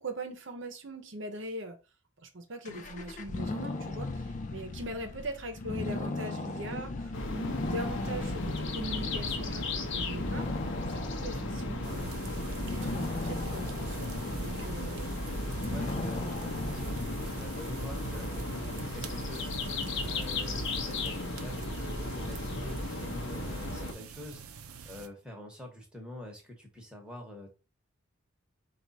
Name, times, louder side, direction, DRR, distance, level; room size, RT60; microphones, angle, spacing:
voice 1, 0.0-1.8 2.3-10.5 10.9-12.3 12.7-15.1, right 1 dB, 60° right, 0.8 m, -41 dB
sound 1, 2.6-18.1, left 3 dB, 35° left, 0.4 m, -38 dB
sound 2, 7.1-23.9, left 2 dB, 55° left, 0.8 m, -35 dB
sound 3, 11.8-25.1, right 6 dB, 90° right, 0.5 m, -47 dB
voice 2, 15.4-19.5 20.0-24.4 24.8-27.5, left 1 dB, 5° right, 1.0 m, -46 dB
4.7 x 2.5 x 4.1 m
head